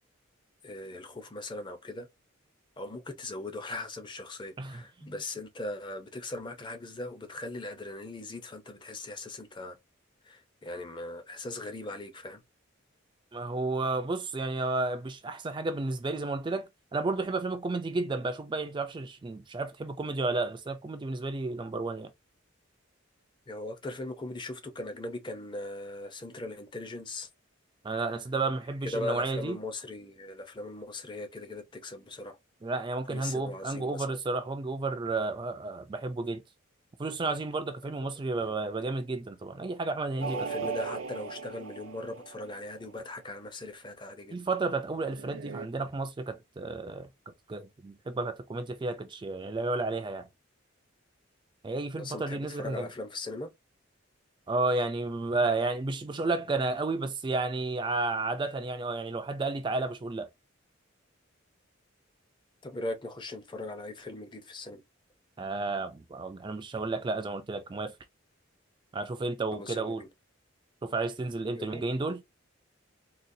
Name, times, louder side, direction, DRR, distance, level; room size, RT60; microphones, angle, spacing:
voice 1, 0.6-2.1 2.8-9.8 10.2-12.4 23.5-27.3 28.8-32.4 33.1-34.2 37.8-38.0 38.4-38.5 40.2-44.4 52.0-53.5 62.6-64.8 69.5-70.1 71.5-71.9, left 2 dB, 25° left, 0.6 m, -39 dB
voice 2, 13.3-22.1 27.8-29.6 32.6-36.4 37.0-40.7 44.3-47.1 47.5-50.3 51.6-52.9 54.5-60.3 65.4-67.9 68.9-70.0 70.8-72.2, right 3 dB, 25° right, 0.3 m, -32 dB
sound 1, 40.2-42.8 45.0-45.7, right 5 dB, 80° right, 0.5 m, -38 dB
3.9 x 2.3 x 2.6 m
head